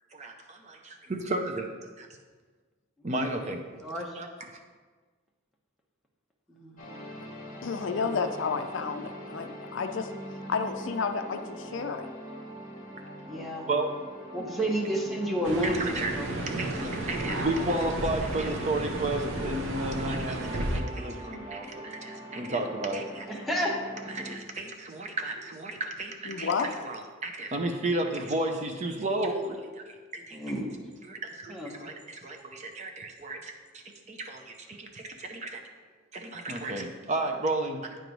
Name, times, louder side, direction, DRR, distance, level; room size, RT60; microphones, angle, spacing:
voice 1, 0.1-2.1 3.0-3.6 4.1-4.6 13.7-13.9 15.6-16.1 16.5-23.3 24.1-30.4 31.0-35.6 36.1-38.0, right 2 dB, 35° right, 4 dB, 0.5 m, -33 dB
voice 2, 3.8-4.1 6.5-6.9 7.9-8.0 13.2-13.6 14.3-15.8 16.1-16.3 23.3-23.9 30.3-30.7 31.5-31.7, right 1 dB, ahead, -2 dB, 0.9 m, -31 dB
sound 1, 6.8-24.4, right 1 dB, 35° left, 1.4 m, -43 dB
voice 3, 7.6-10.1 10.5-12.1 26.3-26.7, left 5 dB, 60° left, 7 dB, 0.4 m, -31 dB
sound 2, 15.4-20.8, right 1 dB, 60° right, 0.8 m, -33 dB
9.0 x 3.1 x 5.2 m, 1.4 s
head